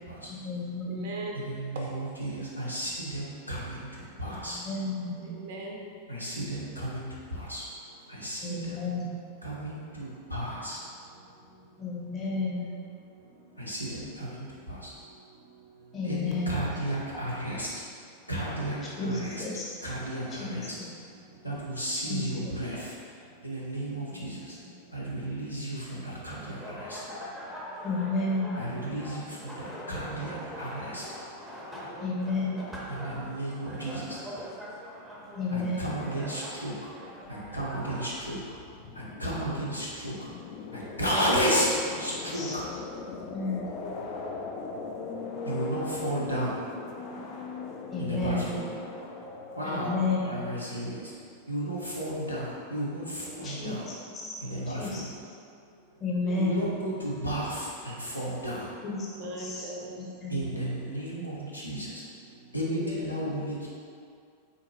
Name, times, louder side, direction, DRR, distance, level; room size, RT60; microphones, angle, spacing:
voice 1, 0.3-1.1 4.2-5.3 8.4-9.1 11.8-12.7 15.9-16.7 19.0-19.6 20.4-20.9 21.9-22.5 24.1-24.3 27.8-28.6 32.0-32.6 35.3-36.0 42.3-42.6 43.3-43.6 47.9-48.6 49.7-50.3 53.4-54.3 54.8-55.0 56.0-56.7 58.8-59.1 59.4-59.7 60.0-60.4, left 3 dB, 25° left, -5 dB, 0.9 m, -32 dB
voice 2, 0.8-1.4 1.7-1.9 5.2-5.9 23.2-23.3 30.4-31.0 31.6-32.2 52.2-52.3 53.1-54.0 54.5-54.9 55.2-55.3 56.2-56.4 59.0-60.1 60.5-60.6 62.7-63.2, right 1 dB, 55° right, -1 dB, 0.5 m, -42 dB
voice 3, 1.3-4.6 6.1-7.6 8.1-8.8 9.4-10.8 13.6-14.9 16.0-17.7 18.3-19.4 19.8-20.7 21.4-22.9 23.4-24.5 24.9-27.0 28.6-31.0 32.9-34.2 35.5-36.7 37.3-38.4 38.9-40.3 40.7-41.7 42.0-42.6 45.4-46.6 48.0-48.7 49.6-51.1 51.5-53.9 54.4-55.1 56.3-58.7 60.3-62.0 62.5-63.7, right 1 dB, 90° left, -6 dB, 0.7 m, -33 dB
sound 1, 26.3-38.1, equal, ahead, 0.6 m, -42 dB
sound 2, 37.2-50.6, left 3 dB, 45° left, 0.3 m, -40 dB
3.7 x 2.6 x 3.0 m, 2.3 s
figure-of-eight pair, 90°, 0 cm